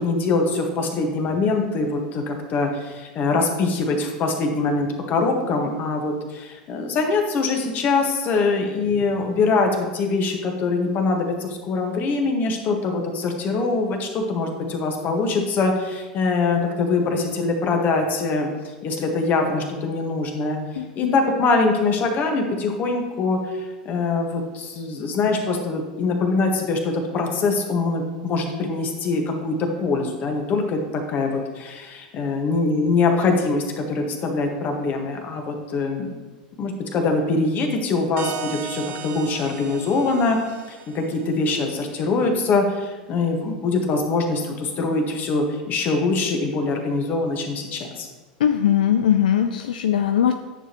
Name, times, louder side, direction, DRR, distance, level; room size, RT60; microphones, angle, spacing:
voice 1, 0.0-18.5 18.8-20.6 20.9-36.1 36.6-40.4 40.7-48.1, left 3 dB, 40° left, 3 dB, 1.5 m, -23 dB
voice 2, 20.8-21.2 48.4-50.3, left 9 dB, 80° left, 7 dB, 0.4 m, -20 dB
sound 1, 38.2-41.6, right 7 dB, 50° right, 0.8 m, -36 dB
9.8 x 6.8 x 3.1 m, 1.2 s
hypercardioid pair, 90°, 4 cm